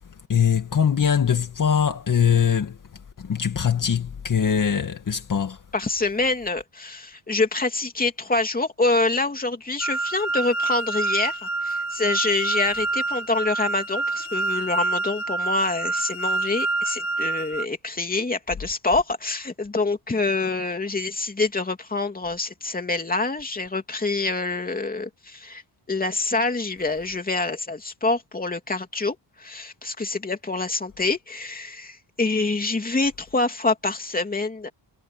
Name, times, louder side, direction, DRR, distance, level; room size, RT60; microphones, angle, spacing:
voice 1, 0.3-2.8 3.2-5.6, left 7 dB, 40° left, 2.2 m, -22 dB
voice 2, 5.7-25.6 25.9-34.7, left 3 dB, 20° left, 3.1 m, -26 dB
sound 1, 9.8-17.6, right 3 dB, 85° left, 3.7 m, -27 dB
cardioid pair, 120°, 46 cm